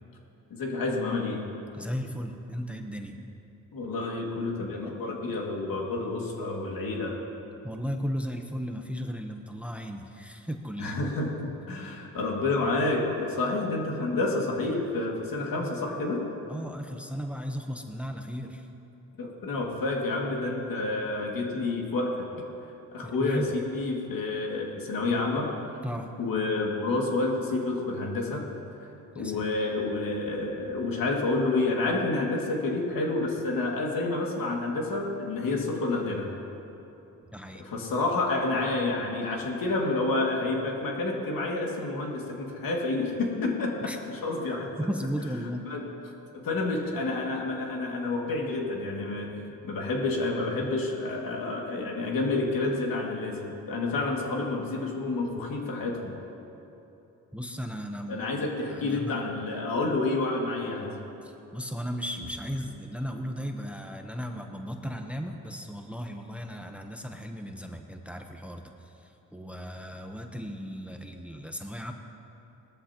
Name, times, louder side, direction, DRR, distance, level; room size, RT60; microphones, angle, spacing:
voice 1, 0.5-1.5 3.7-7.2 10.8-16.3 19.2-22.3 22.9-25.6 26.2-28.5 29.2-36.3 37.6-44.7 45.6-45.8 46.3-56.2 58.1-61.1, left 2 dB, 75° left, -1 dB, 2.3 m, -29 dB
voice 2, 1.7-3.2 7.6-11.0 15.4-15.7 16.5-18.7 23.0-23.5 25.8-26.1 29.1-29.4 37.3-37.7 43.9-44.0 44.8-45.7 57.3-59.2 61.2-71.9, equal, 5° right, 4 dB, 0.9 m, -36 dB
20.0 x 13.5 x 3.0 m, 2.9 s
cardioid pair, 85°, 35 cm